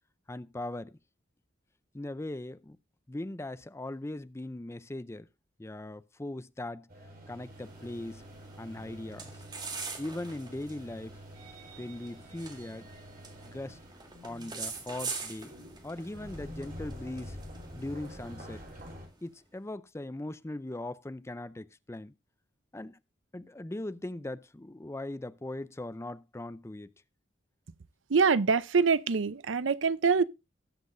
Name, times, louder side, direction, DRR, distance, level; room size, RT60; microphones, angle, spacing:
voice 1, 0.3-1.0 1.9-2.8 3.1-5.3 5.6-6.9 7.3-8.2 8.6-9.3 10.0-11.2 11.8-12.9 13.4-13.8 14.2-15.5 15.8-17.4 17.8-18.6 19.2-22.1 22.7-23.0 23.3-26.9, left 1 dB, 15° left, 0.5 m, -39 dB
sound 1, 6.9-19.1, equal, 50° right, 4.8 m, -48 dB
sound 2, 7.5-19.2, right 4 dB, 25° right, 1.9 m, -45 dB
voice 2, 28.1-30.2, right 5 dB, 80° right, 0.6 m, -25 dB
19.0 x 7.5 x 2.6 m
head